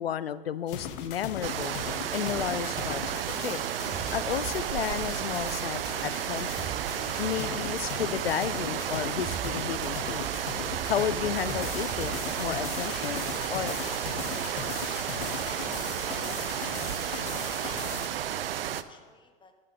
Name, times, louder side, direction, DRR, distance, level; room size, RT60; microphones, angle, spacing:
voice 1, 0.0-1.7 2.1-3.0 3.4-3.6 4.1-6.7 7.2-10.3 10.9-13.2 13.5-14.0, left 9 dB, 80° left, 16 dB, 0.5 m, -32 dB
sound 1, 0.7-18.1, left 8 dB, 60° left, 1.1 m, -39 dB
sound 2, 1.4-18.8, right 11 dB, 70° right, 0.6 m, -32 dB
sound 3, 3.9-6.1 6.6-8.4 9.1-14.2, right 9 dB, 25° right, 0.6 m, -44 dB
voice 2, 16.1-17.6 18.1-19.5, left 3 dB, 15° left, 6 dB, 1.3 m, -53 dB
12.0 x 6.7 x 6.7 m, 1.5 s
figure-of-eight pair, 80°, 29 cm